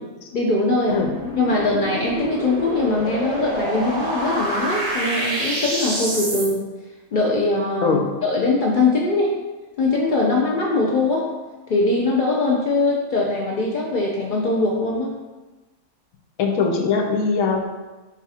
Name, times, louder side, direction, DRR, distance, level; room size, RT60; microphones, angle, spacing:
voice 1, 0.3-1.0 1.4-6.6 7.1-9.3 9.8-11.3 11.7-15.1, left 2 dB, 70° left, -3 dB, 0.4 m, -21 dB
sound 1, 0.9-6.5, right 1 dB, 75° right, 1.2 m, -27 dB
voice 2, 16.4-17.6, left 5 dB, 85° left, 2 dB, 1.0 m, -21 dB
4.0 x 2.4 x 4.2 m, 1.2 s
omnidirectional pair, 1.5 m